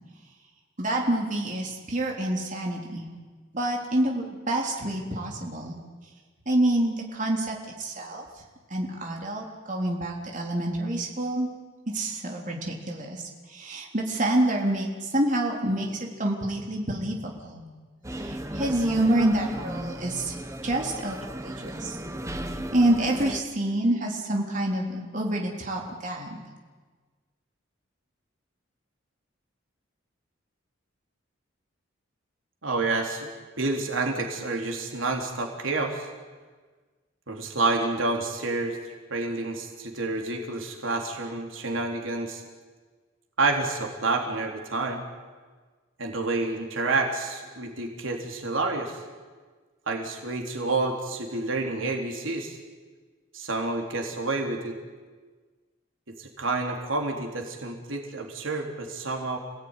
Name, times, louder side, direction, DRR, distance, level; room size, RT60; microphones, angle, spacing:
voice 1, 0.8-3.1 3.5-5.8 6.5-8.2 8.7-11.5 11.9-13.2 13.5-17.7 18.1-20.4 20.6-22.0 22.3-26.4, right 1 dB, 40° right, 0 dB, 3.8 m, -27 dB
sound 1, 18.0-23.4, right 1 dB, 15° right, 1.3 m, -35 dB
voice 2, 32.6-33.3 33.6-36.1 37.3-38.8 39.1-42.4 43.4-45.0 46.0-49.0 49.9-52.6 53.3-54.7 56.2-59.4, right 3 dB, 80° right, 2 dB, 3.7 m, -29 dB
28.5 x 18.5 x 10.0 m, 1.4 s
head